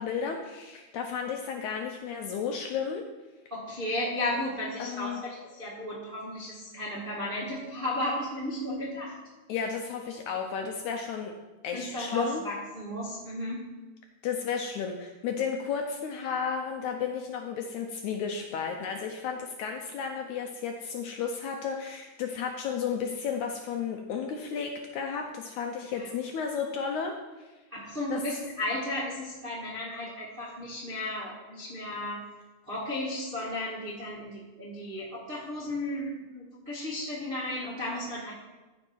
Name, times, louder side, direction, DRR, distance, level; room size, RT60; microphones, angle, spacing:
voice 1, 0.0-3.0 4.8-5.2 9.5-11.3 11.6-12.4 14.2-27.5 28.1-28.2, left 6 dB, 85° left, 3 dB, 1.7 m, -33 dB
voice 2, 3.5-9.2 11.7-13.7 25.9-26.1 27.7-32.2 32.7-38.3, left 1 dB, 30° right, -7 dB, 1.0 m, -34 dB
14.5 x 5.2 x 4.5 m, 1.2 s
omnidirectional pair, 4.2 m